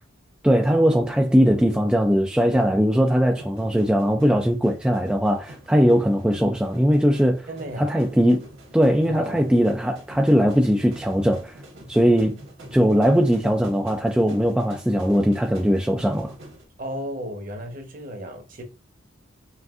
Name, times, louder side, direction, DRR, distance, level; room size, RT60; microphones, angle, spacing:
voice 1, 0.4-7.5 7.8-8.4 8.7-11.6 11.9-12.4 12.7-16.3, equal, 5° right, 0.3 m, -20 dB
sound 1, 1.2-16.6, right 1 dB, 75° right, 1.5 m, -45 dB
voice 2, 7.5-8.0 9.1-9.6 16.8-18.6, equal, 40° right, 1.0 m, -34 dB
5.8 x 2.5 x 2.5 m
head